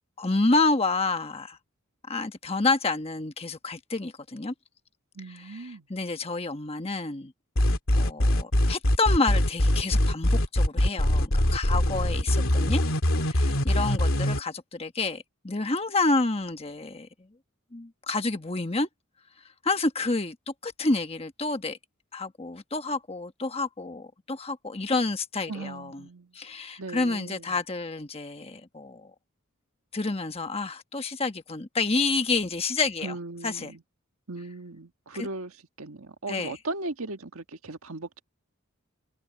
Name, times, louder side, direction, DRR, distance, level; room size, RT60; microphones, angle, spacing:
voice 1, 0.2-1.6 2.1-4.5 5.3-7.3 7.9-12.8 13.2-17.3 17.7-18.9 19.6-21.8 22.1-26.1 26.3-29.1 29.9-33.2 33.4-33.7 35.1-35.3 36.3-36.6, left 3 dB, 25° left, 1.2 m, -29 dB
voice 2, 5.1-5.8 25.5-26.3 26.8-27.4 33.0-33.8 34.3-35.5 35.8-38.2, right 2 dB, 80° right, 1.6 m, -37 dB
sound 1, 7.6-14.4, left 1 dB, 70° left, 2.7 m, -22 dB
head